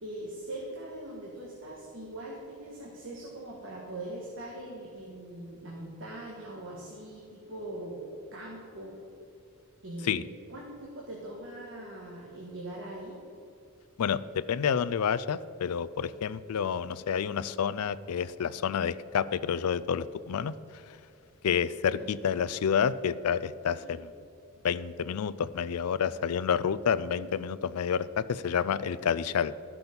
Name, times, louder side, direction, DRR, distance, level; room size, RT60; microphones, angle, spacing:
voice 1, 0.0-9.0 9.8-13.2 21.8-22.1 23.8-23.9 27.1-27.3, right 1 dB, 55° right, -3 dB, 1.6 m, -41 dB
voice 2, 14.0-20.6 21.4-24.0 24.6-29.5, left 7 dB, 80° left, 16 dB, 0.4 m, -29 dB
13.0 x 6.1 x 5.3 m, 2.6 s
head